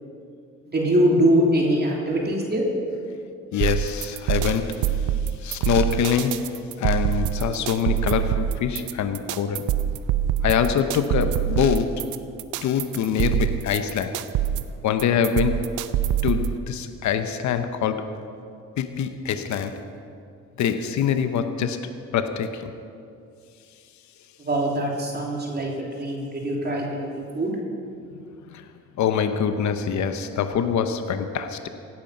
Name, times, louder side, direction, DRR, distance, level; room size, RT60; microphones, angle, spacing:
voice 1, 0.7-2.6 24.4-27.5, right 1 dB, 30° right, -2 dB, 2.7 m, -23 dB
voice 2, 3.5-9.7 10.4-12.0 12.6-14.2 14.8-15.7 16.2-18.2 18.8-19.8 20.6-22.7 28.5-28.6 29.0-31.7, left 7 dB, 70° left, 9 dB, 1.0 m, -25 dB
sound 1, 3.6-16.6, right 10 dB, 85° right, 0.7 m, -25 dB
16.5 x 12.0 x 5.4 m, 2.5 s
cardioid pair, 90°, 30 cm